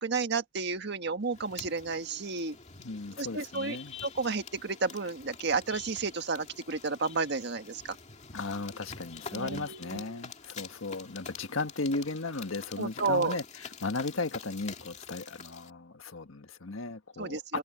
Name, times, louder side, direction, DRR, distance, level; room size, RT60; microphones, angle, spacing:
voice 1, 0.0-2.6 3.2-3.8 4.0-7.9 9.3-10.2 12.8-13.4 17.2-17.6, right 4 dB, 60° right, 1.6 m, -32 dB
sound 1, 1.3-15.7, left 6 dB, 35° left, 2.1 m, -47 dB
voice 2, 2.8-3.9 8.3-17.6, left 3 dB, 85° left, 1.5 m, -36 dB
head